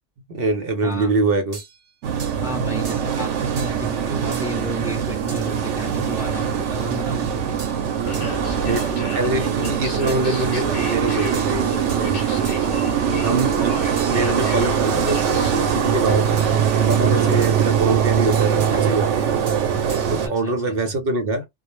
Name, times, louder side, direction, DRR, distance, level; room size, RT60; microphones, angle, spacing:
voice 1, 0.3-1.6 8.6-11.7 12.0-12.4 13.2-16.4 16.7-19.3 20.1-21.5, right 3 dB, 60° right, 0.8 m, -24 dB
voice 2, 0.8-1.2 2.4-7.5 17.2-17.5 20.2-20.9, equal, 5° right, 0.8 m, -33 dB
sound 1, 1.5-1.8 2.2-2.4 2.9-3.1 3.6-3.8 4.3-4.5 5.3-5.5 5.8-6.4 7.6-7.8 8.1-8.3 8.8-9.0 9.7-10.3 11.3-12.1 12.4-12.8 13.4-13.7 14.0-14.3 16.4-17.1 17.4-17.8 18.3-18.8 19.5-20.1, right 4 dB, 45° right, 0.4 m, -39 dB
sound 2, 2.0-20.3, right 8 dB, 85° right, 0.9 m, -22 dB
sound 3, 7.7-16.4, left 2 dB, 45° left, 0.8 m, -33 dB
2.3 x 2.0 x 3.0 m
omnidirectional pair, 1.2 m